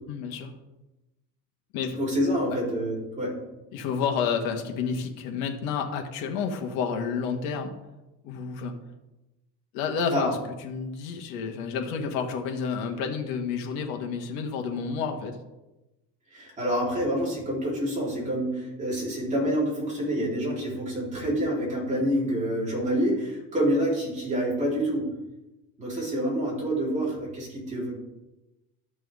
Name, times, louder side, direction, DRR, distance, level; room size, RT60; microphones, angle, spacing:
voice 1, 0.1-0.5 1.7-2.0 2.5-2.6 3.7-7.7 8.2-8.7 9.7-15.4 21.9-22.0, left 6 dB, 80° left, 4 dB, 1.5 m, -30 dB
voice 2, 2.0-3.4 10.1-10.4 16.3-25.0 25.8-27.9, equal, 20° right, -5 dB, 3.6 m, -27 dB
12.5 x 6.1 x 3.6 m, 0.99 s
cardioid pair, 155°, 35 cm